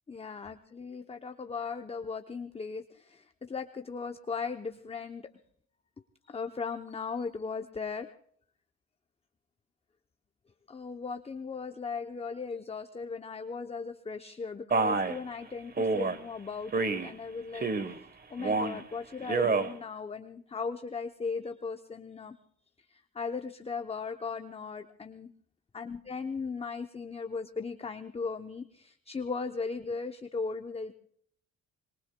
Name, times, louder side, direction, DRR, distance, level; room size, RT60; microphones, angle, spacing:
voice 1, 0.1-5.3 6.3-8.1 10.7-17.7 18.3-22.4 22.9-25.3 25.7-30.9, left 5 dB, 20° left, 7 dB, 0.7 m, -37 dB
Male speech man speaking, 14.7-15.2 15.8-16.2 16.7-17.1 17.5-18.0 18.4-18.8 19.2-19.7, right 4 dB, 30° right, 1.1 m, -28 dB
26.0 x 22.5 x 2.2 m, 0.63 s
cardioid pair, 90°, 30 cm